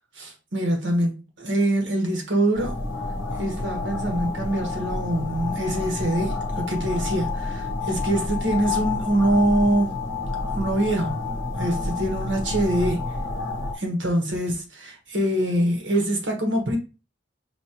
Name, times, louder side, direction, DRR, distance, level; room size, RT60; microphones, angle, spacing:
voice 1, 0.1-2.8 3.4-9.9 10.5-11.1 11.6-13.1 13.7-16.8, right 1 dB, 85° right, 1.3 m, -24 dB
sound 1, 2.5-13.7, left 3 dB, 80° left, 0.9 m, -29 dB
5.3 x 2.8 x 2.9 m
head